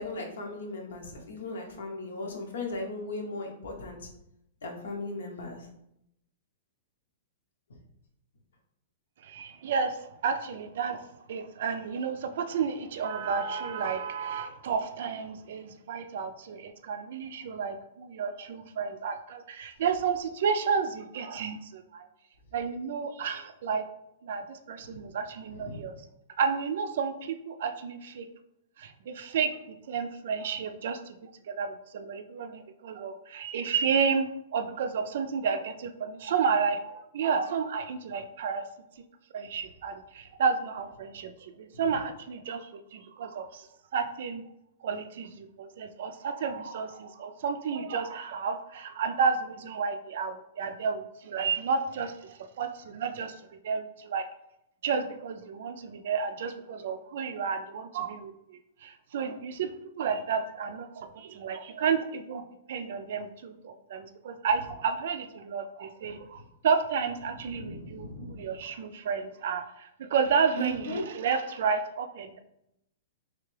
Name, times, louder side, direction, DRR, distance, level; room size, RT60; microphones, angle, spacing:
voice 1, 0.0-4.0 4.6-5.7 24.8-25.0 25.5-25.8 41.7-42.0 66.0-66.4 67.4-68.4 70.6-71.0, left 1 dB, 85° left, 1 dB, 0.8 m, -37 dB
voice 2, 9.2-22.1 22.5-23.9 24.2-25.9 26.4-28.3 28.8-38.6 39.3-43.7 43.9-44.4 44.8-53.4 53.6-54.2 54.8-59.7 60.0-72.4, right 6 dB, 55° right, 8 dB, 0.3 m, -31 dB
3.4 x 3.2 x 3.2 m, 0.82 s
hypercardioid pair, 170°, 0 cm